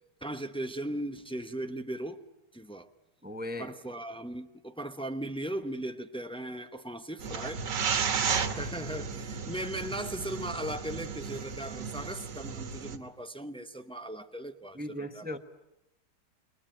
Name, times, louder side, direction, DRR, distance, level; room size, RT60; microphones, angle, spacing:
voice 1, 0.2-2.2 2.5-2.9 3.6-7.7 8.2-15.2, right 1 dB, 10° left, 0.3 m, -38 dB
voice 2, 3.2-3.7 14.7-15.4, left 1 dB, 5° right, 0.8 m, -37 dB
sound 1, 7.2-13.0, right 6 dB, 75° right, 2.0 m, -33 dB
29.0 x 22.5 x 8.9 m
omnidirectional pair, 1.9 m